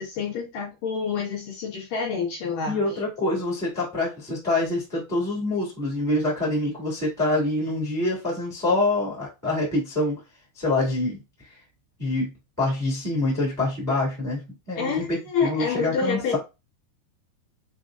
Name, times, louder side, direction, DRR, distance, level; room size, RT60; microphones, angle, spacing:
voice 1, 0.0-2.8 14.8-16.4, left 5 dB, 65° left, 2.5 m, -28 dB
voice 2, 2.6-10.1 10.5-11.2 12.0-12.3 12.6-16.4, left 2 dB, 20° right, 0.4 m, -26 dB
6.4 x 2.2 x 2.4 m
omnidirectional pair, 4.8 m